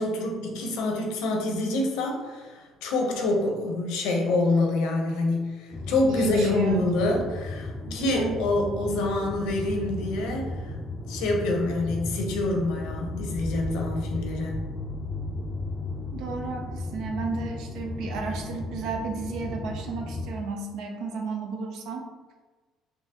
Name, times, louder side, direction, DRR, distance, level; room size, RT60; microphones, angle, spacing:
voice 1, 0.0-10.7 11.1-14.6, left 2 dB, 85° left, 1 dB, 0.7 m, -26 dB
sound 1, 5.7-20.3, left 2 dB, 15° left, 0.4 m, -35 dB
voice 2, 6.1-6.8 7.8-8.4 16.1-22.1, right 4 dB, 75° right, 2 dB, 0.5 m, -33 dB
3.7 x 2.8 x 2.8 m, 1.3 s
cardioid pair, 115°, 0 cm